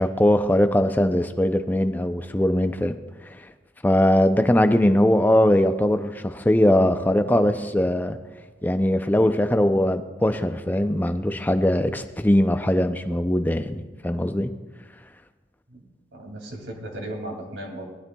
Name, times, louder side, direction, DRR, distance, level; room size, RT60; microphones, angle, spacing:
voice 1, 0.0-3.0 3.8-8.2 8.6-14.5, left 1 dB, 10° left, 9 dB, 0.4 m, -21 dB
voice 2, 16.1-17.8, right 1 dB, 75° right, 0 dB, 2.5 m, -36 dB
18.0 x 12.0 x 2.3 m, 1.2 s
head